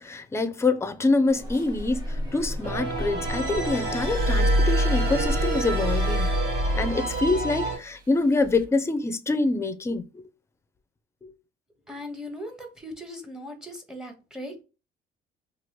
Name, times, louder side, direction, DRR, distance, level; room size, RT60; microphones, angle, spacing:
voice 1, 0.0-6.3 6.7-10.2 11.2-11.3, left 3 dB, 15° left, 0.5 m, -26 dB
sound 1, 1.3-6.3, equal, 20° right, 1.2 m, -35 dB
sound 2, 2.6-7.8, right 2 dB, 75° right, 1.8 m, -31 dB
Glass, 3.8-7.4 8.4-8.6, equal, 55° right, 0.8 m, -25 dB
voice 2, 11.9-14.6, left 1 dB, 5° right, 0.8 m, -39 dB
2.9 x 2.4 x 3.1 m
cardioid pair, 110°, 17 cm